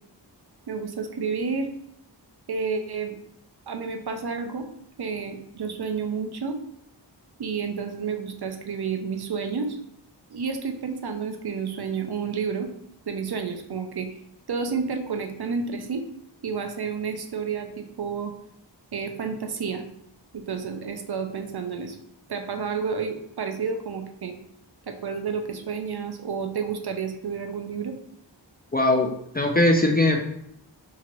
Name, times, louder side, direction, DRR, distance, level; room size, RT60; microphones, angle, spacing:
voice 1, 0.7-1.7 2.5-3.1 3.7-4.7 5.0-6.6 7.4-9.8 10.3-12.7 13.1-14.1 14.5-16.1 16.4-18.3 18.9-19.8 20.3-22.0 22.3-24.4 24.9-27.9, right 5 dB, 60° right, 5 dB, 0.5 m, -30 dB
voice 2, 28.7-29.1 29.3-30.2, left 1 dB, 25° left, 1 dB, 0.3 m, -20 dB
2.8 x 2.4 x 2.9 m, 0.74 s
wide cardioid pair, 45°, 44 cm